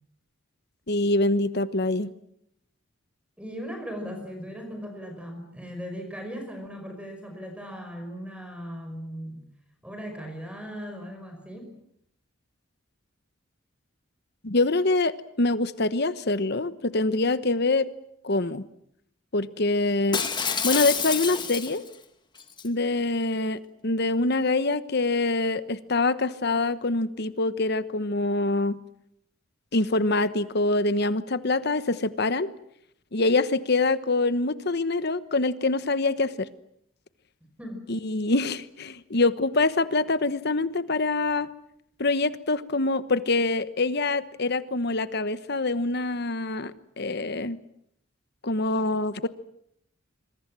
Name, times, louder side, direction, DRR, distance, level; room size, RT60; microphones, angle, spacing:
voice 1, 0.9-2.1 14.4-17.9 18.2-18.7 19.3-20.2 20.6-21.8 22.6-28.8 29.7-32.5 33.1-36.5 37.9-41.5 42.0-47.6 48.4-49.3, left 2 dB, 55° left, 14 dB, 1.2 m, -25 dB
voice 2, 3.4-9.4 9.8-11.7 37.6-37.9, equal, 5° right, 4 dB, 5.5 m, -38 dB
Shatter, 20.1-21.9 22.4-22.7, left 6 dB, 20° left, 1.7 m, -28 dB
26.0 x 23.5 x 7.6 m, 0.73 s
head